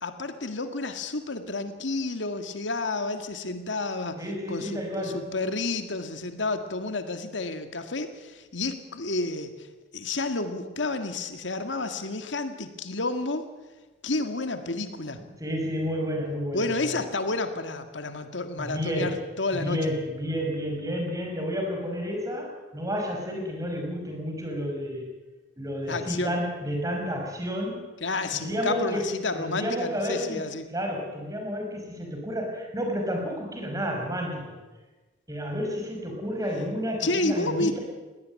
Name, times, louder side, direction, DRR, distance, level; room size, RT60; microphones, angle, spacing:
voice 1, 0.0-4.2 4.5-9.7 9.9-13.5 14.0-15.2 16.5-19.9 25.9-26.4 28.0-30.7 37.0-37.8, left 2 dB, 80° left, 8 dB, 1.9 m, -30 dB
voice 2, 4.2-5.3 15.4-16.8 18.6-19.2 19.5-25.1 25.6-27.9 28.3-29.1 29.4-30.4 30.7-34.5 35.3-37.8, equal, 20° right, 2 dB, 5.7 m, -31 dB
21.5 x 17.5 x 9.6 m, 1.2 s
head